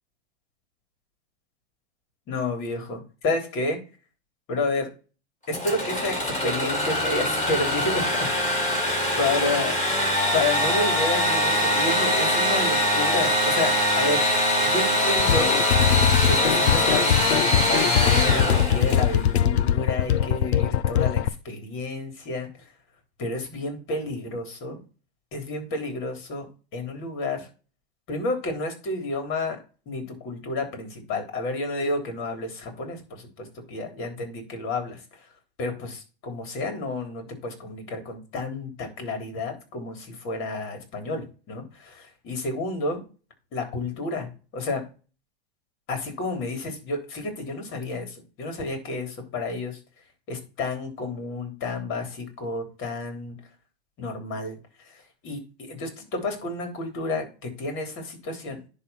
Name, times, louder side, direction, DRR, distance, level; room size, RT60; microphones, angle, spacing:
voice 1, 2.3-3.8 4.5-4.9 5.5-8.6 9.2-9.8 10.3-14.3 14.6-15.5 16.3-22.5 23.2-24.8 25.3-26.5 26.7-27.5 28.1-29.6 29.9-35.0 35.6-43.0 43.5-44.3 44.5-44.8 45.9-49.8 50.3-53.3 54.0-54.6 55.2-58.6, left 2 dB, 40° left, 5 dB, 3.6 m, -30 dB
Engine / Sawing, 5.5-19.2, left 1 dB, 25° left, 5.5 m, -23 dB
sound 1, 15.2-21.3, left 10 dB, 80° left, 0.7 m, -22 dB
10.5 x 3.7 x 5.7 m, 0.34 s
hypercardioid pair, 125°, 32 cm